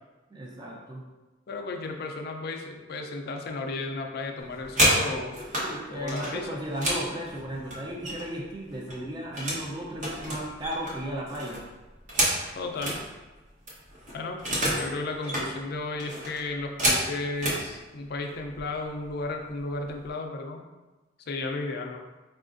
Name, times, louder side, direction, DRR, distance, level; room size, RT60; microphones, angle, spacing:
voice 1, 0.3-1.0 5.6-11.6, right 1 dB, 20° right, -2 dB, 0.5 m, -35 dB
voice 2, 1.5-5.4 5.9-6.6 12.6-13.0 14.1-14.4 14.7-20.6 21.3-22.0, left 3 dB, 55° left, 3 dB, 0.4 m, -34 dB
sound 1, 4.4-5.7 6.1-8.4 8.7-9.7 10.0-13.0 13.4-13.5 13.7-14.9 15.2-15.5 16.0-17.6 18.4-18.6 19.0-19.3 19.6-20.1, right 1 dB, 40° right, 0.9 m, -29 dB
4.8 x 2.4 x 2.5 m, 1.2 s
head